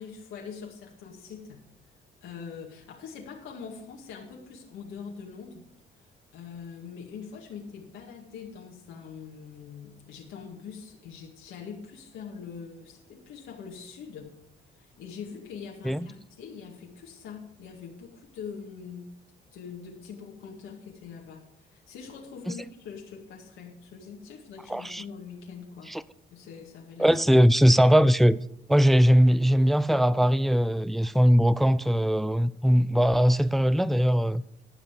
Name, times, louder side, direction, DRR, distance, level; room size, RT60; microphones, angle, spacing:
voice 1, 0.0-1.6 2.2-5.6 6.0-6.1 6.3-14.4 14.8-19.1 19.5-25.9 26.3-27.1, left 6 dB, 85° left, 2.1 m, -43 dB
voice 2, 24.7-25.0 25.9-26.0 27.0-28.4 28.7-34.4, equal, ahead, 0.4 m, -20 dB
14.0 x 5.5 x 6.8 m
cardioid pair, 90°, 20 cm